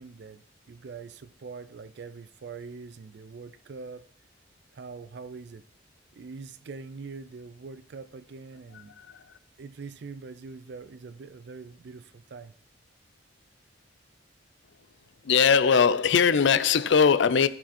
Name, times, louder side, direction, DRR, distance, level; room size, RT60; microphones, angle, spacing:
voice 1, 0.0-4.0 4.7-5.7 6.1-8.9 9.6-12.5, right 4 dB, 55° right, 0.4 m, -43 dB
voice 2, 15.2-17.5, left 6 dB, 65° left, 0.4 m, -20 dB
14.5 x 5.0 x 4.3 m
head